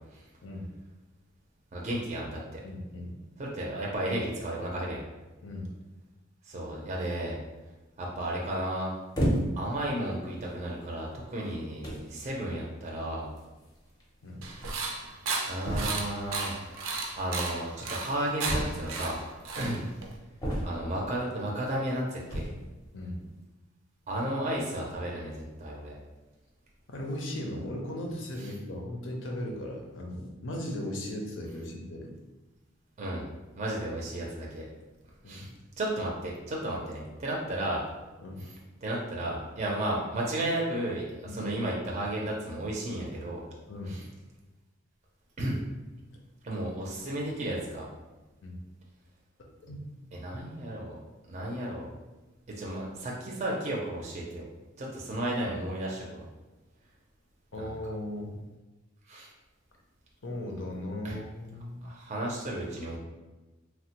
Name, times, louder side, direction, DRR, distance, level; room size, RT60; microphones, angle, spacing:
voice 1, 1.7-2.6 3.4-5.0 6.4-7.4 8.0-8.9 9.6-13.3 15.4-16.5 17.1-19.2 19.5-19.8 20.6-22.5 24.1-26.0 28.4-28.5 33.0-33.3 33.6-34.7 35.3-35.5 35.8-37.8 38.4-38.5 38.8-43.4 43.9-44.0 45.4-45.6 46.4-47.9 50.1-50.9 51.3-51.9 52.6-54.5 54.8-56.3 57.6-57.7 59.1-59.3 61.0-61.2 61.8-63.0, right 1 dB, 35° right, -3 dB, 0.5 m, -33 dB
voice 2, 2.6-3.2 5.4-5.7 14.2-14.5 19.7-19.8 22.9-23.2 26.9-32.1 35.2-35.5 38.2-38.4 41.3-41.4 43.7-44.0 48.4-48.6 49.7-49.8 57.5-58.4 60.2-62.0, left 1 dB, 70° left, 1 dB, 0.6 m, -37 dB
sound 1, 9.1-9.8 10.5-10.7 11.5-11.6 11.8-12.1 13.4-13.5 13.7-13.8 14.0-14.1 15.6-16.2 18.4-19.1 20.4-21.0 22.2-22.7, equal, 20° left, 0.6 m, -30 dB
sound 2, 14.4-20.2, right 3 dB, 90° right, 0.5 m, -34 dB
3.0 x 2.1 x 2.9 m, 1.1 s
head